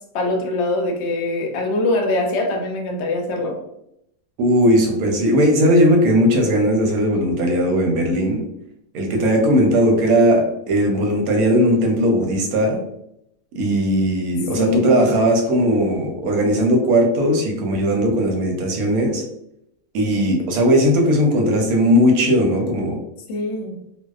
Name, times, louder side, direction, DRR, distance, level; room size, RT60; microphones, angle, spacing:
voice 1, 0.1-3.6 14.6-15.2 23.3-23.8, left 2 dB, 65° left, 2 dB, 0.7 m, -23 dB
voice 2, 4.4-8.4 8.9-12.8 13.5-19.2 19.9-23.0, equal, 85° right, 2 dB, 1.1 m, -18 dB
2.7 x 2.0 x 2.3 m, 0.79 s
omnidirectional pair, 1.5 m